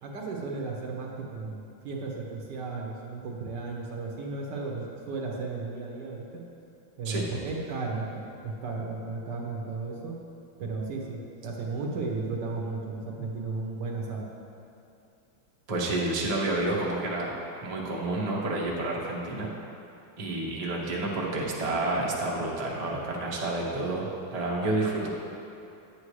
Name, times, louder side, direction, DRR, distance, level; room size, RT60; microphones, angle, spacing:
voice 1, 0.0-6.2 7.0-10.1 10.6-14.3, right 3 dB, 65° right, -2 dB, 1.5 m, -34 dB
voice 2, 15.7-19.5 20.2-25.1, right 2 dB, 25° right, -4 dB, 0.8 m, -29 dB
10.0 x 8.5 x 3.2 m, 2.7 s
omnidirectional pair, 2.2 m